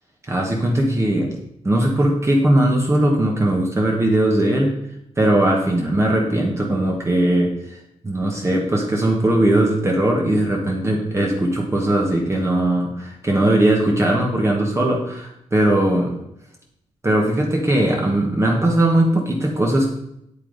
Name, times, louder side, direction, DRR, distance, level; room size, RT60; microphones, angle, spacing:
voice 1, 0.3-1.3 1.6-4.7 5.2-16.1 17.0-19.9, right 1 dB, 20° right, -1 dB, 1.3 m, -19 dB
9.1 x 8.4 x 4.0 m, 0.78 s
wide cardioid pair, 160°, 12 cm